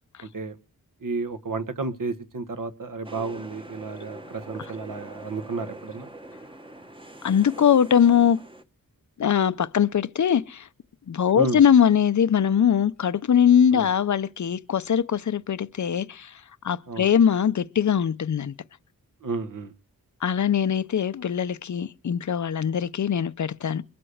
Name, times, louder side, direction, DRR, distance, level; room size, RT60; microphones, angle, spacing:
voice 1, 0.2-0.5 1.0-6.1 11.3-11.6 13.7-13.9 16.9-17.1 19.2-19.7, right 3 dB, 60° right, 1.6 m, -32 dB
sound 1, 3.0-8.6, right 1 dB, 15° right, 1.1 m, -43 dB
voice 2, 7.2-8.4 9.2-10.7 11.1-16.3 16.6-18.5 20.2-23.8, left 8 dB, 50° left, 0.7 m, -21 dB
23.0 x 7.8 x 6.5 m
wide cardioid pair, 180°, 37 cm